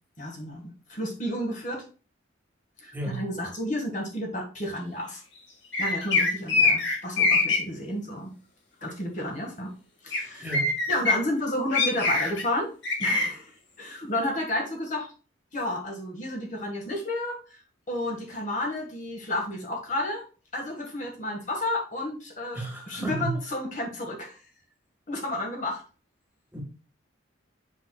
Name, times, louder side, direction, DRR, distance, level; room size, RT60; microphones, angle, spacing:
voice 1, 0.2-1.8 2.8-5.2 5.8-8.3 8.8-9.7 10.0-10.6 10.9-12.7 13.0-15.1 15.5-20.2 20.5-24.4 25.1-25.8, left 1 dB, 40° left, 1 dB, 1.6 m, -31 dB
sound 1, 5.7-7.6 10.1-10.2 10.5-11.1 11.7-12.4 12.8-13.3, left 3 dB, 60° left, 1.8 m, -23 dB
voice 2, 10.4-10.7 22.5-23.3 26.5-26.6, right 1 dB, 10° right, -1 dB, 1.6 m, -32 dB
7.2 x 5.8 x 2.3 m, 0.35 s
head